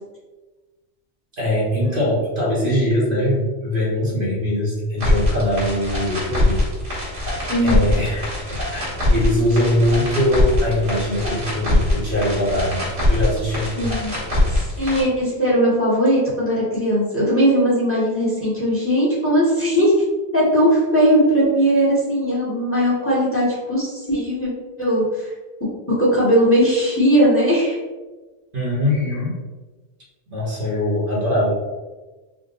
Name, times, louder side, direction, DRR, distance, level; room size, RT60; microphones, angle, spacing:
voice 1, 1.4-6.6 7.6-13.8 28.5-29.4 30.3-31.5, left 1 dB, 55° right, -6 dB, 1.2 m, -22 dB
sound 1, 5.0-15.0, left 1 dB, 80° right, 1.8 m, -22 dB
voice 2, 13.8-14.1 14.5-19.9 20.3-24.5 24.8-25.0 26.0-27.8, equal, 10° left, -8 dB, 1.2 m, -18 dB
3.7 x 2.2 x 3.9 m, 1.2 s
omnidirectional pair, 1.1 m